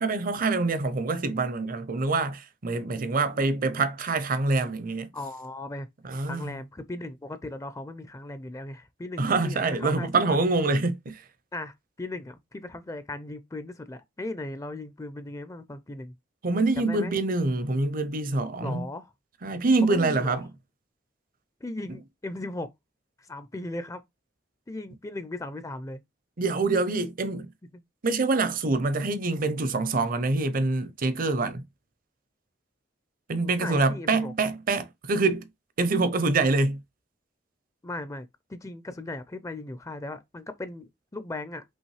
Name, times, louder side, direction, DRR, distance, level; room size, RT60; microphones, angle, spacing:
voice 1, 0.0-5.1 6.0-6.6 9.2-11.1 16.4-18.9 19.4-20.4 26.4-27.5 28.0-31.6 33.3-35.5 35.8-36.8, right 3 dB, 50° right, 0.6 m, -25 dB
voice 2, 3.0-3.7 5.1-5.9 6.2-10.4 11.5-16.1 16.8-17.2 18.6-19.1 19.8-20.4 21.6-22.7 23.3-24.0 24.7-26.0 27.7-27.8 33.6-34.3 37.8-41.6, left 2 dB, 20° left, 0.5 m, -37 dB
5.4 x 3.0 x 3.2 m
head